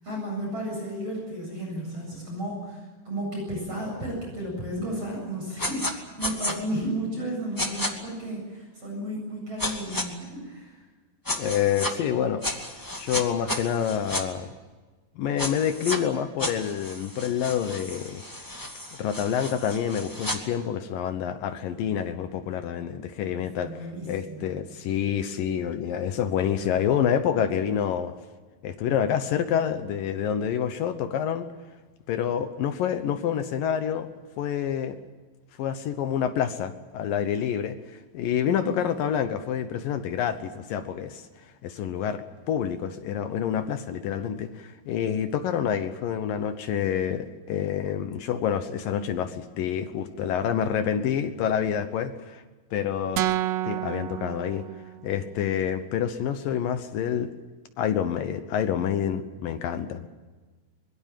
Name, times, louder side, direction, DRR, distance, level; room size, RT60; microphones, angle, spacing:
voice 1, 0.0-10.8 23.4-24.6 38.4-38.8, right 1 dB, 35° right, 0 dB, 8.8 m, -33 dB
sound 1, 5.6-5.9 6.2-6.5 7.6-7.9 9.6-10.0 11.2-11.9 12.4-14.2 15.4-16.0 16.4-20.4, left 1 dB, 15° left, 0.6 m, -32 dB
voice 2, 11.4-12.4 13.0-14.5 15.2-18.2 19.0-28.1 28.6-31.5 32.1-35.0 35.6-41.3 41.6-52.4 52.7-53.3 53.7-54.7 55.0-57.3 57.8-60.1, left 9 dB, 70° left, 9 dB, 2.3 m, -27 dB
sound 2, 53.2-55.3, right 13 dB, 80° right, 3.0 m, -30 dB
24.0 x 21.5 x 7.5 m, 1.3 s
omnidirectional pair, 5.0 m